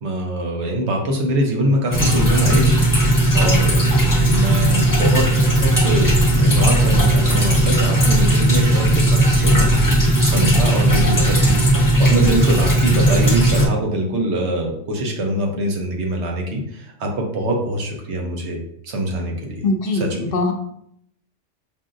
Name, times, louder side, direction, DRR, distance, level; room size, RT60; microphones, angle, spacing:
voice 1, 0.0-3.8 4.3-19.7 19.9-20.3, right 1 dB, 65° right, 0 dB, 1.1 m, -23 dB
sound 1, 1.9-13.7, right 1 dB, 20° left, 0.6 m, -16 dB
voice 2, 19.6-20.5, left 3 dB, 60° left, 4 dB, 0.7 m, -21 dB
5.5 x 2.6 x 2.5 m, 0.74 s
omnidirectional pair, 1.2 m